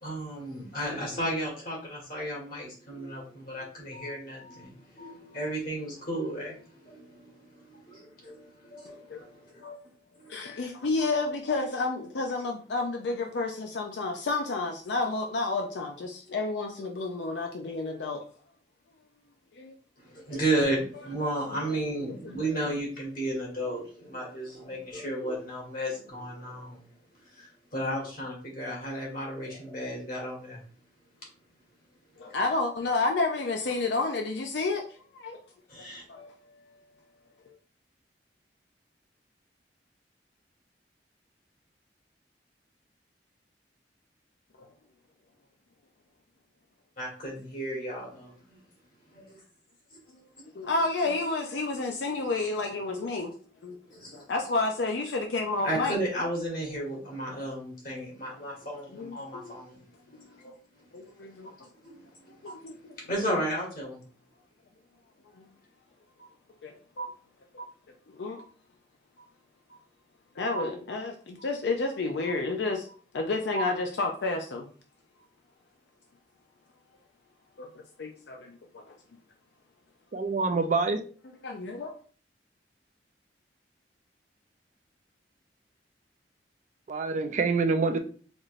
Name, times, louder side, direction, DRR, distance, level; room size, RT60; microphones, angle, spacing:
voice 1, 0.0-6.6 6.8-9.5 20.0-26.8 27.4-30.6 35.7-36.0 47.0-48.6 49.1-49.3 53.9-54.2 55.6-59.7 60.1-60.3 61.8-61.9 62.5-62.6 62.8-64.0, right 1 dB, 55° left, -2 dB, 1.8 m, -33 dB
voice 2, 10.3-18.2 19.6-19.8 20.3-20.4 20.9-21.8 22.1-22.3 32.2-35.4 35.8-36.8 44.6-44.7 50.5-53.3 53.6-53.8 54.1-56.0 58.9-59.5 60.4-60.5 60.9-61.5 62.4-62.9 63.3-63.4 66.2-66.3 66.6-67.1 67.5-67.6 68.1-68.5 70.4-74.7 77.6-77.7 78.0-79.0 81.4-81.9, left 3 dB, 70° left, 3 dB, 0.5 m, -31 dB
voice 3, 80.1-81.0 86.9-88.0, right 4 dB, 45° right, 6 dB, 0.4 m, -26 dB
4.2 x 3.1 x 2.4 m, 0.42 s
head